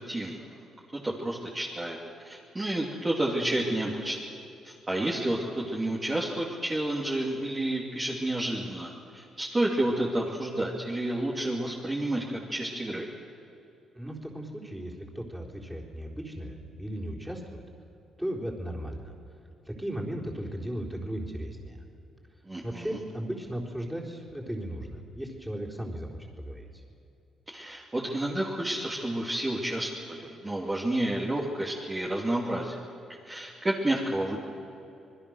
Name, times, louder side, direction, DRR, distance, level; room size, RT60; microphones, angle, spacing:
voice 1, 0.1-0.4 0.9-2.0 2.2-4.2 4.6-13.0 22.5-22.9 27.5-32.8 33.3-34.4, right 1 dB, 20° right, -4 dB, 3.0 m, -30 dB
voice 2, 13.9-17.6 18.2-19.1 19.6-21.8 22.6-26.1 26.4-26.8, right 1 dB, 5° right, -1 dB, 4.2 m, -36 dB
27.5 x 20.5 x 6.5 m, 2.7 s
cardioid pair, 90°, 0 cm